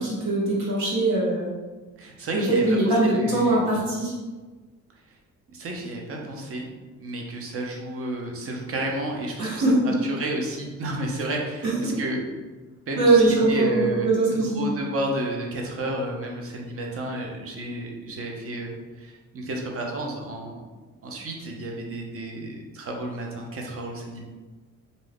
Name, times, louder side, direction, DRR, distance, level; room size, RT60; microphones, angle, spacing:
voice 1, 0.0-1.5 2.3-4.1 9.4-9.7 11.6-12.0 12.9-14.7, right 2 dB, 70° right, -6 dB, 1.2 m, -22 dB
voice 2, 2.0-2.6 3.0-3.6 5.5-6.7 7.0-12.2 12.9-20.7 21.0-24.2, right 2 dB, 50° right, 1 dB, 0.7 m, -31 dB
2.6 x 2.3 x 3.4 m, 1.3 s
cardioid pair, 90°, 30 cm